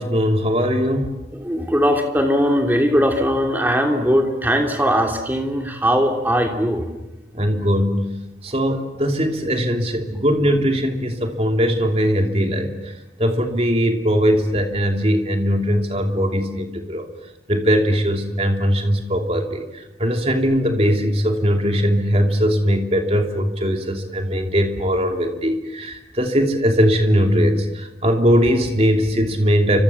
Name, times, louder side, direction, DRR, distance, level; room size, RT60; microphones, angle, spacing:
voice 1, 0.0-1.1 7.3-8.2 8.4-12.7 13.2-17.0 17.5-29.8, equal, 35° right, 4 dB, 3.0 m, -20 dB
voice 2, 1.3-6.9, equal, 10° right, 3 dB, 3.1 m, -19 dB
29.5 x 25.5 x 7.3 m, 1.0 s
head